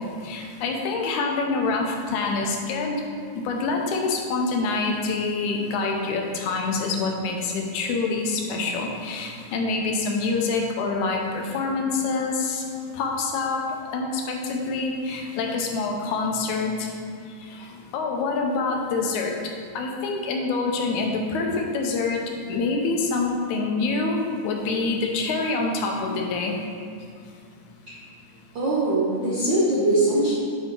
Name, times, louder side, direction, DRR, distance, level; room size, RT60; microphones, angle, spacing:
voice 1, 0.0-3.0 3.4-12.6 12.9-13.6 13.9-16.9 17.4-19.4 19.8-26.6, left 3 dB, 90° left, 1 dB, 2.2 m, -26 dB
voice 2, 28.5-30.3, right 2 dB, 75° right, -7 dB, 1.0 m, -21 dB
8.8 x 4.0 x 3.7 m, 2.3 s
omnidirectional pair, 3.3 m